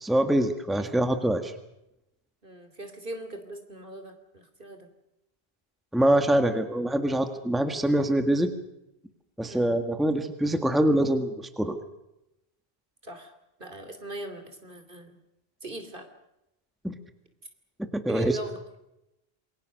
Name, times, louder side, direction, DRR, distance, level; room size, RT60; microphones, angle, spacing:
voice 1, 0.0-1.5 5.9-8.5 9.4-11.8 16.8-16.9 17.9-18.2, right 1 dB, ahead, 7 dB, 1.6 m, -24 dB
voice 2, 2.4-4.9 9.5-9.8 13.0-13.3 13.6-15.2 15.6-16.1 18.1-18.6, right 2 dB, 55° right, 7 dB, 3.2 m, -39 dB
28.0 x 22.0 x 6.5 m, 0.87 s
omnidirectional pair, 1.0 m